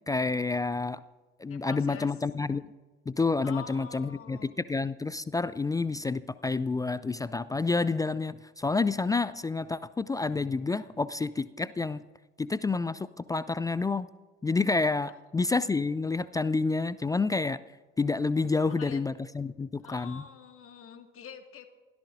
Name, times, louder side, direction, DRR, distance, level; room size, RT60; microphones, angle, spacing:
voice 1, 0.1-1.0 1.4-2.6 3.1-12.0 12.4-14.1 14.4-17.6 18.0-20.2, left 3 dB, 10° left, 17 dB, 0.4 m, -29 dB
voice 2, 1.5-2.2 3.4-4.5 18.5-19.0 19.8-21.7, left 8 dB, 40° left, 6 dB, 2.0 m, -46 dB
28.0 x 16.5 x 2.6 m, 1.3 s
figure-of-eight pair, 60°, 34 cm